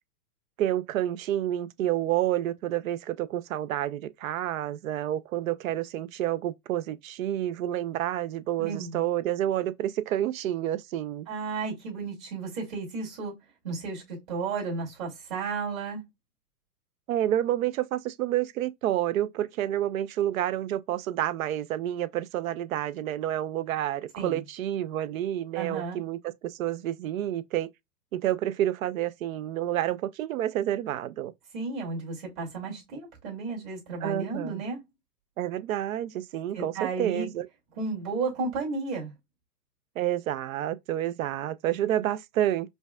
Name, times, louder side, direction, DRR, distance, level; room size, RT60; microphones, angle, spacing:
voice 1, 0.6-11.3 17.1-27.7 28.1-31.3 34.0-34.6 35.4-37.5 40.0-42.7, right 12 dB, 60° right, 0.5 m, -29 dB
voice 2, 8.6-9.0 11.3-13.3 13.6-16.0 24.2-24.4 25.5-26.0 31.5-34.8 36.5-37.3 37.8-39.1, right 4 dB, 30° right, 2.3 m, -33 dB
5.1 x 2.3 x 2.2 m
hypercardioid pair, 145°, 49 cm